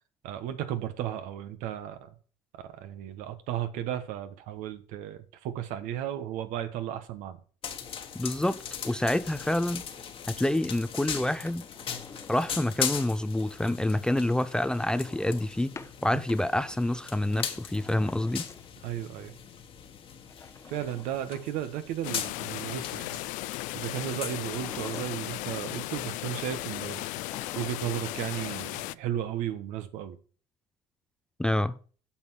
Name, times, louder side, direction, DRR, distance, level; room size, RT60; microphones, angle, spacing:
voice 1, 0.2-2.1 2.8-7.4 16.1-16.2 18.8-19.3 20.7-23.2 23.7-27.1 27.5-30.2, right 11 dB, 80° right, 1.3 m, -34 dB
sound 1, 7.6-27.1, left 7 dB, 45° left, 1.4 m, -40 dB
voice 2, 8.2-8.6 8.8-9.8 10.4-11.6 12.3-15.7 16.0-18.5 31.4-31.8, left 1 dB, 5° left, 0.4 m, -27 dB
Drawer open or close, 11.3-12.8 14.5-16.0 17.1-18.9 20.2-21.8 24.3-25.5 27.0-28.1 28.3-28.4, left 4 dB, 20° left, 0.9 m, -48 dB
sound 2, 22.0-28.9, left 19 dB, 80° left, 0.4 m, -36 dB
8.8 x 5.9 x 6.3 m
cardioid pair, 110°, 13 cm